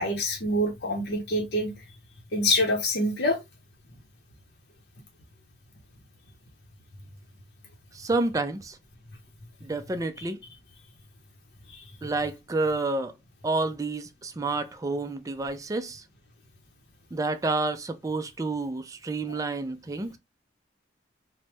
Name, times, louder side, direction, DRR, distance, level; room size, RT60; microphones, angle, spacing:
voice 1, 0.0-1.7 2.3-3.4 11.7-11.8, left 1 dB, 60° left, 0.7 m, -26 dB
voice 2, 7.9-8.8 9.6-10.4 12.0-13.1 13.4-16.0 17.1-20.2, right 3 dB, 20° right, 0.3 m, -29 dB
3.0 x 2.1 x 3.2 m
head